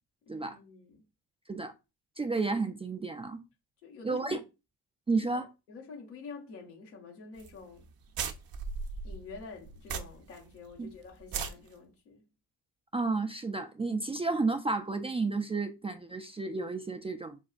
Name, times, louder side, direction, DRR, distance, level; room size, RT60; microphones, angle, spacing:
voice 1, 0.2-1.0 3.8-4.4 5.3-7.9 9.0-12.2, left 4 dB, 85° left, 1.2 m, -48 dB
voice 2, 2.2-3.4 4.0-4.4 5.1-5.5 10.8-10.9 12.9-17.4, right 3 dB, 15° right, 0.3 m, -31 dB
sound 1, 7.4-7.5 7.8-7.9 8.1-10.4 10.7-10.8 11.2-11.5, right 5 dB, 50° right, 0.7 m, -36 dB
6.2 x 2.3 x 2.3 m
hypercardioid pair, 45°, 47 cm